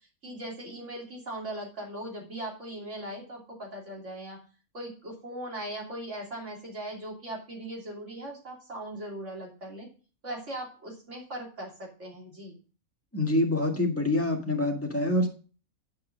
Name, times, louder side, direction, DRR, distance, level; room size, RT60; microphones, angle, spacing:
voice 1, 0.2-4.4 4.7-9.9 10.2-12.6, right 1 dB, 55° right, -1 dB, 3.5 m, -39 dB
voice 2, 13.1-15.3, left 1 dB, 10° left, 1 dB, 1.7 m, -26 dB
10.0 x 5.7 x 5.2 m, 0.36 s
omnidirectional pair, 1.5 m